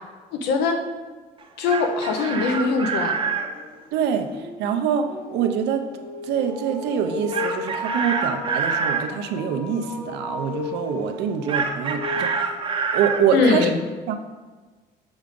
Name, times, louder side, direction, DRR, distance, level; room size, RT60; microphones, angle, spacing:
voice 1, 0.3-0.8 1.6-3.2 13.3-13.8, left 4 dB, 90° left, 4 dB, 0.8 m, -21 dB
Chicken rooster, 1.4-3.5 7.3-9.1 11.5-13.2, right 5 dB, 30° right, 0.6 m, -26 dB
sound 1, 2.9-13.3, left 3 dB, 60° left, 1.6 m, -36 dB
voice 2, 3.9-5.9 6.2-12.5 12.9-13.7 14.1-14.2, right 7 dB, 85° right, 6 dB, 0.6 m, -25 dB
7.1 x 3.7 x 3.6 m, 1.3 s
cardioid pair, 110°, 17 cm